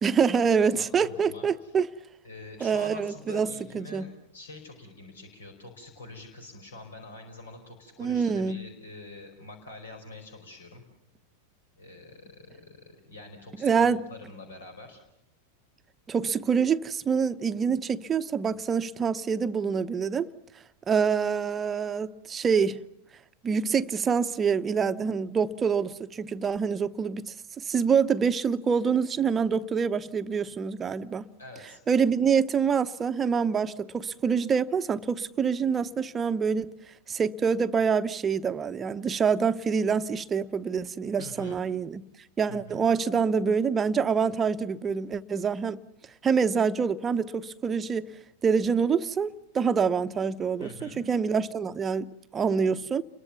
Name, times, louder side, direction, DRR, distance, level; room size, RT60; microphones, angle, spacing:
voice 1, 0.0-1.9 2.6-3.5 3.7-4.0 8.0-8.6 13.6-14.0 16.1-20.3 20.9-22.8 23.4-31.2 31.9-36.7 37.1-42.0 42.4-45.8 46.2-48.1 48.4-53.0, right 6 dB, 20° right, 0.9 m, -26 dB
voice 2, 0.6-1.7 2.2-10.8 11.8-15.0 31.4-31.8 41.2-41.6 42.5-42.8 50.6-51.0, left 2 dB, 70° left, 4.8 m, -46 dB
29.5 x 22.5 x 7.1 m
figure-of-eight pair, 90°, 0 cm